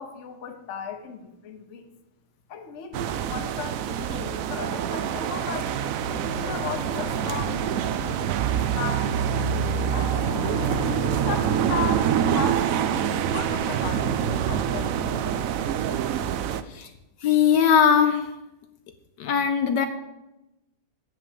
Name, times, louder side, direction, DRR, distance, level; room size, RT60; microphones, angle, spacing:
voice 1, 0.0-1.9 2.5-5.8 6.3-10.4 11.0-15.1, left 7 dB, 50° left, 7 dB, 1.0 m, -36 dB
sound 1, 2.9-16.6, right 9 dB, 85° right, 0.7 m, -26 dB
sound 2, 5.4-16.6, left 7 dB, 90° left, 1.5 m, -39 dB
voice 2, 17.2-18.3 19.2-19.9, left 7 dB, 70° left, 8 dB, 1.2 m, -20 dB
8.3 x 6.0 x 7.5 m, 0.96 s
omnidirectional pair, 2.0 m